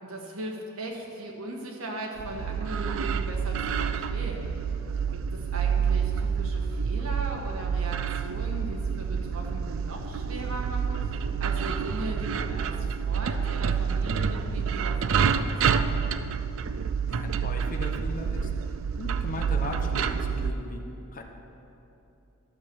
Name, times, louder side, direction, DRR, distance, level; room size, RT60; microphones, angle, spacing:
voice 1, 0.0-4.5 5.1-16.0, right 1 dB, 80° right, 1 dB, 1.6 m, -38 dB
sound 1, 2.2-20.5, right 6 dB, 65° right, 0.4 m, -28 dB
voice 2, 17.0-20.8 21.1-21.2, left 2 dB, 40° left, 3 dB, 0.9 m, -38 dB
12.5 x 6.8 x 6.2 m, 2.9 s
head